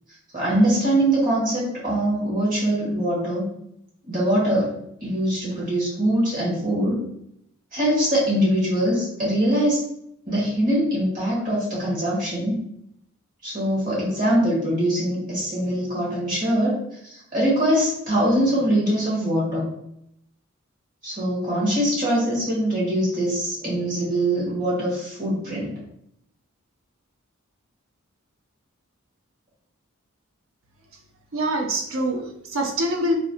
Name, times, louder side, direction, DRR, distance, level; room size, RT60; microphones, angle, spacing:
voice 1, 0.3-3.4 4.1-4.7 5.0-7.1 7.7-9.8 10.3-12.6 13.4-16.8 17.0-19.7 21.0-25.8, right 1 dB, 40° right, -7 dB, 1.5 m, -22 dB
voice 2, 31.3-33.2, right 1 dB, 65° right, 2 dB, 0.5 m, -25 dB
3.0 x 2.7 x 2.7 m, 0.76 s
head